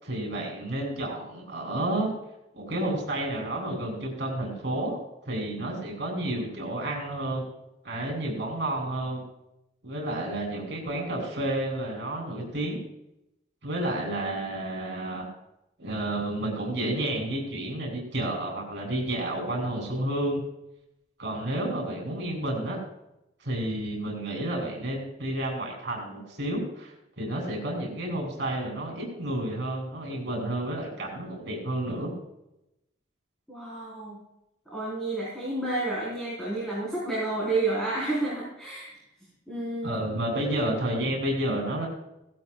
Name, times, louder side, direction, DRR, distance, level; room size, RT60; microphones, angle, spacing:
voice 1, 0.0-2.1 2.5-5.0 5.3-7.4 7.8-9.2 9.8-12.8 13.6-15.3 15.8-20.4 21.2-22.8 23.4-32.1 39.8-41.9, right 1 dB, 65° right, 0 dB, 4.0 m, -30 dB
voice 2, 33.5-34.2 34.7-39.0 39.5-40.0, right 2 dB, 5° left, -8 dB, 4.6 m, -30 dB
17.0 x 12.0 x 2.5 m, 0.86 s
head